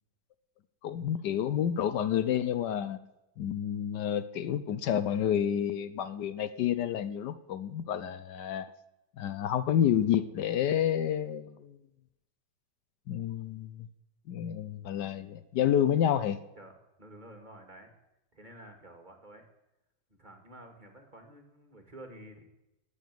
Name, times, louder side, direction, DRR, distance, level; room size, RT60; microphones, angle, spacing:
voice 1, 0.8-3.0 3.4-8.7 9.2-11.8 13.1-13.9 14.3-16.4, left 10 dB, 75° left, 13 dB, 1.3 m, -29 dB
voice 2, 17.0-18.0 18.3-19.5 20.1-22.4, right 1 dB, 25° right, 4 dB, 2.2 m, -50 dB
19.5 x 7.2 x 9.3 m, 0.93 s
omnidirectional pair, 1.9 m